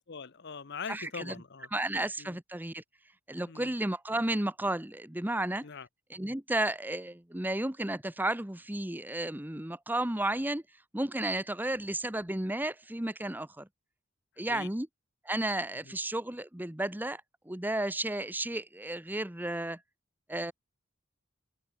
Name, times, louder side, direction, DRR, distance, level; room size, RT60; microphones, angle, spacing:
voice 1, 0.0-1.7 2.2-2.4 3.4-3.7 5.6-5.9 14.5-14.7 15.9-16.0, left 5 dB, 55° left, 0.7 m, -42 dB
voice 2, 0.9-1.3 1.7-2.8 3.3-5.6 6.1-10.6 10.9-13.7 14.4-14.9 15.2-17.2 17.5-19.8 20.3-20.5, right 1 dB, 10° right, 0.9 m, -33 dB
open air
head